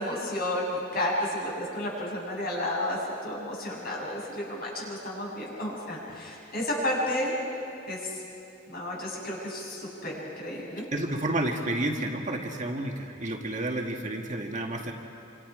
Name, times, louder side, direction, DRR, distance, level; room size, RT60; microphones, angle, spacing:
voice 1, 0.0-7.3 7.9-8.1 8.7-10.9, left 1 dB, 50° left, -4 dB, 7.0 m, -32 dB
voice 2, 10.8-14.9, right 1 dB, 40° right, 1 dB, 1.8 m, -30 dB
27.5 x 26.5 x 5.0 m, 2.7 s
head